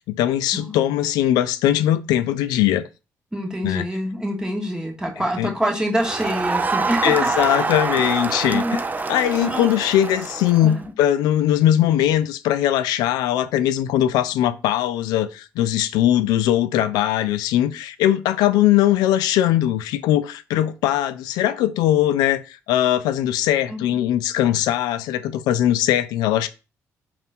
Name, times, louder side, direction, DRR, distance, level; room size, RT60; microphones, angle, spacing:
voice 1, 0.1-2.8 3.6-3.8 5.4-5.5 7.0-8.6 9.1-22.4 22.7-26.5, left 12 dB, 90° left, 0.4 m, -20 dB
voice 2, 3.3-7.7 8.5-8.8 9.4-9.7 10.6-10.9 23.7-24.0, equal, 10° right, 1.3 m, -26 dB
Crowd, 6.0-10.8, right 3 dB, 25° right, 0.4 m, -25 dB
3.6 x 2.5 x 4.2 m
supercardioid pair, 70°, 7 cm